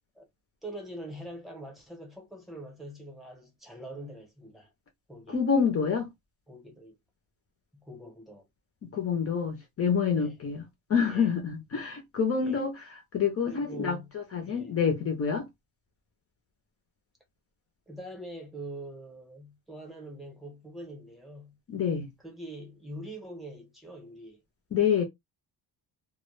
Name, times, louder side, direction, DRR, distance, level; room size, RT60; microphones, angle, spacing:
voice 1, 0.6-4.7 5.1-5.4 6.5-7.0 7.7-8.5 10.1-10.3 11.1-11.3 12.4-12.6 13.4-14.1 14.5-14.7 17.9-21.6 22.2-24.4, right 1 dB, ahead, 0.8 m, -43 dB
voice 2, 5.3-6.1 8.8-15.5 21.7-22.1 24.7-25.0, left 6 dB, 35° left, 0.5 m, -27 dB
2.2 x 2.1 x 3.0 m
cardioid pair, 155°, 44 cm